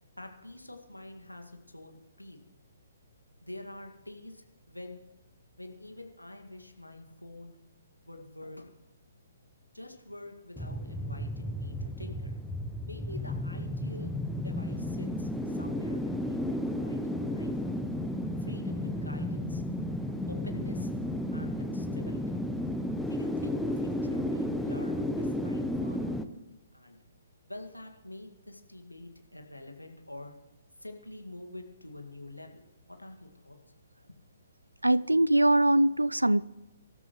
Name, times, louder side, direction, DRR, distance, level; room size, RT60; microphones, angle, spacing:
voice 1, 0.2-2.4 3.4-5.0 5.6-7.6 8.1-8.7 9.7-12.4 12.9-17.8 18.4-19.6 20.3-20.9 21.3-22.2 23.1-26.1 26.7-27.0 27.5-30.3 30.8-32.6 32.9-33.6 34.1-34.2, left 1 dB, 90° left, 1.9 m, -46 dB
sound 1, 10.6-26.2, left 1 dB, ahead, 0.8 m, -33 dB
voice 2, 34.8-36.4, right 1 dB, 85° right, 0.4 m, -22 dB
25.0 x 13.0 x 3.1 m
figure-of-eight pair, 130°, 0 cm